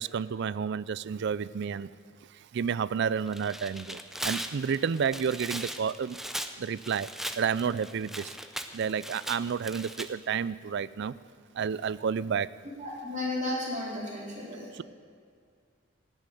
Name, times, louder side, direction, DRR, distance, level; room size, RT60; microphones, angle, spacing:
voice 1, 0.0-1.9 2.5-4.0 4.2-6.2 6.6-7.1 7.4-8.3 8.7-11.1 11.5-12.5 14.7-14.8, right 6 dB, 55° right, 18 dB, 0.4 m, -30 dB
Tearing, 3.2-10.1, right 1 dB, ahead, 0.6 m, -38 dB
voice 2, 12.8-14.7, left 2 dB, 35° right, -5 dB, 4.2 m, -33 dB
16.5 x 7.3 x 9.2 m, 2.2 s
head